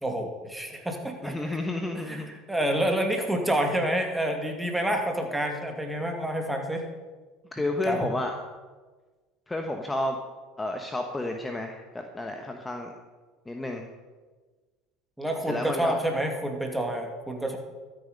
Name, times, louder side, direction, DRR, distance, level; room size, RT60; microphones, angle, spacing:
voice 1, 0.0-1.6 2.1-6.9 7.9-8.0 15.2-17.6, right 1 dB, 5° right, 3 dB, 2.5 m, -28 dB
voice 2, 1.2-2.3 7.5-8.3 9.5-10.2 10.6-12.9 13.5-13.8 15.5-15.9, left 2 dB, 15° left, 3 dB, 1.3 m, -31 dB
13.0 x 9.2 x 5.4 m, 1.3 s
hypercardioid pair, 85°, 0 cm